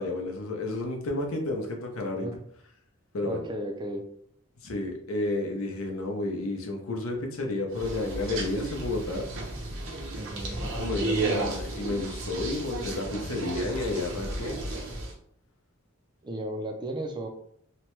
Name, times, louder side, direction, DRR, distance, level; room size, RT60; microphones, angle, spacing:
voice 1, 0.0-2.3 3.1-3.4 4.6-9.3 10.8-14.6, left 2 dB, 80° left, 2 dB, 0.7 m, -31 dB
voice 2, 3.2-4.1 10.2-10.7 16.2-17.3, right 1 dB, 20° right, 4 dB, 0.4 m, -35 dB
sound 1, 7.7-15.1, right 2 dB, 70° right, 0.7 m, -33 dB
2.9 x 2.1 x 3.0 m, 0.65 s
head